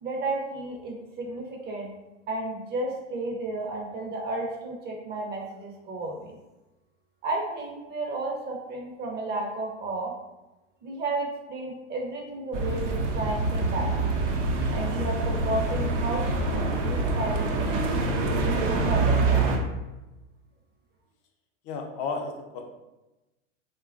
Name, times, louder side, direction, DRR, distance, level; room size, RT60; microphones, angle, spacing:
voice 1, 0.0-1.9 2.3-6.3 7.2-10.1 10.8-14.1 14.7-17.8 18.4-19.6, right 2 dB, 25° right, -1 dB, 0.5 m, -32 dB
sound 1, 12.5-19.6, right 3 dB, 70° right, 0.6 m, -26 dB
voice 2, 21.7-22.8, left 4 dB, 50° left, 3 dB, 0.5 m, -33 dB
3.0 x 2.3 x 2.4 m, 1.0 s
hypercardioid pair, 100°, 37 cm